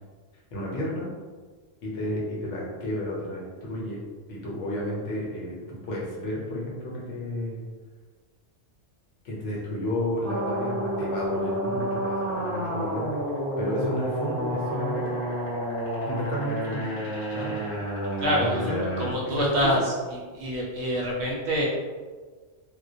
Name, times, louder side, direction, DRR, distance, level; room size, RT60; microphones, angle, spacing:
voice 1, 0.5-1.1 1.8-7.6 9.2-13.1 13.6-15.2 16.1-17.0 17.3-17.6 18.4-19.8, left 1 dB, 75° left, -4 dB, 1.0 m, -32 dB
sound 1, 10.2-19.1, right 1 dB, 25° left, 0.9 m, -30 dB
voice 2, 18.2-19.9 20.3-21.7, equal, 65° right, -4 dB, 0.8 m, -26 dB
2.2 x 2.2 x 2.6 m, 1.4 s
omnidirectional pair, 1.3 m